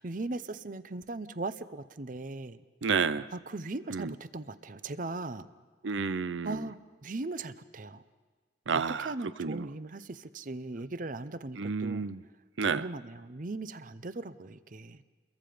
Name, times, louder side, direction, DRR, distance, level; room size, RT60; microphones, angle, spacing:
voice 1, 0.0-2.6 3.3-5.5 6.4-6.8 7.0-8.0 8.9-12.1 12.7-15.0, right 2 dB, 45° right, 13 dB, 0.7 m, -38 dB
voice 2, 2.8-3.3 3.9-4.1 5.8-6.7 8.7-9.7 11.6-12.2 12.6-12.9, right 5 dB, 90° right, 16 dB, 0.6 m, -31 dB
29.5 x 22.5 x 5.1 m, 1.5 s
head